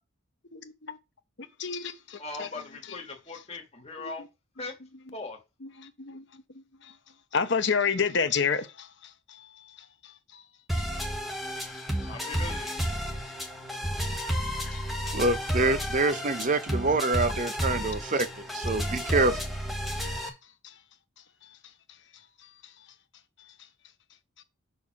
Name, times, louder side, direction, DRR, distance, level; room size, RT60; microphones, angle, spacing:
voice 1, 0.5-1.0 1.6-2.5 4.0-4.1 5.6-6.9 7.3-9.5 10.0-10.4 11.3-11.4 12.0-12.2 14.7-14.8 19.9-20.3 20.6-20.7, left 6 dB, 55° left, 0.9 m, -31 dB
voice 2, 2.2-4.2 4.6-4.7 5.1-5.4 12.1-12.8, left 3 dB, 30° left, 1.6 m, -39 dB
sound 1, 10.7-20.3, equal, ahead, 1.1 m, -32 dB
voice 3, 15.1-18.3 18.5-19.4, right 3 dB, 35° right, 0.6 m, -26 dB
5.6 x 4.6 x 5.8 m
head